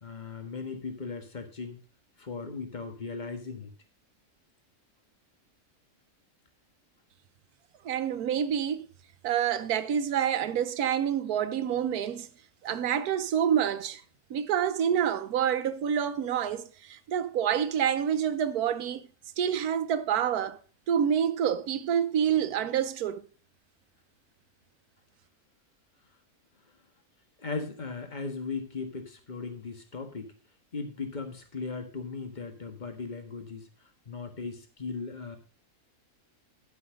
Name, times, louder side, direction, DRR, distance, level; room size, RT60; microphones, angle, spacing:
voice 1, 0.0-1.8 2.2-3.7 27.4-30.3 30.7-33.7 34.1-35.4, left 4 dB, 30° left, 1.6 m, -37 dB
voice 2, 7.8-8.9 9.2-12.3 12.6-14.0 14.3-19.0 19.4-20.6 20.9-23.2, right 8 dB, 85° right, 1.3 m, -27 dB
11.5 x 6.1 x 5.0 m
omnidirectional pair, 1.6 m